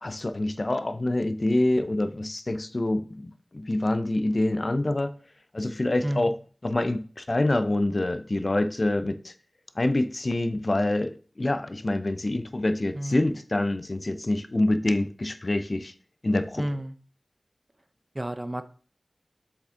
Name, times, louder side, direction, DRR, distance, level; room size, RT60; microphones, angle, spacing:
voice 1, 0.0-5.1 5.5-6.4 6.6-9.3 9.8-11.1 11.4-15.9 16.2-16.7, left 1 dB, 45° left, 0.5 m, -26 dB
voice 2, 6.0-6.3 12.9-13.3 16.6-17.0 18.1-18.7, right 1 dB, 25° right, 0.6 m, -31 dB
6.9 x 5.1 x 3.8 m
wide cardioid pair, 70°, 0 cm